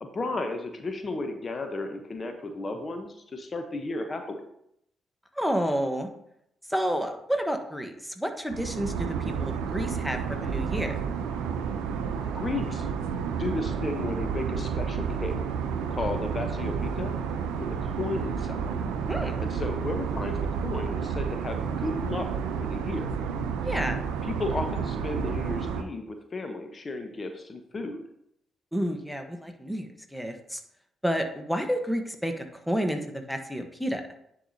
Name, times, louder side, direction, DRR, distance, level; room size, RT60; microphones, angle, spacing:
voice 1, 0.0-4.5 12.3-12.9 13.4-15.4 15.9-17.1 17.6-18.7 19.4-22.3 22.6-23.1 24.2-28.0, left 2 dB, 40° left, 6 dB, 0.9 m, -34 dB
voice 2, 5.4-6.1 6.7-9.1 9.4-11.0 19.1-19.4 23.6-24.0 28.7-30.6 31.0-34.0, equal, ahead, 5 dB, 1.1 m, -30 dB
sound 1, 8.5-25.8, right 6 dB, 80° right, 0.5 m, -30 dB
9.9 x 4.7 x 2.8 m, 0.74 s
hypercardioid pair, 45°, 0 cm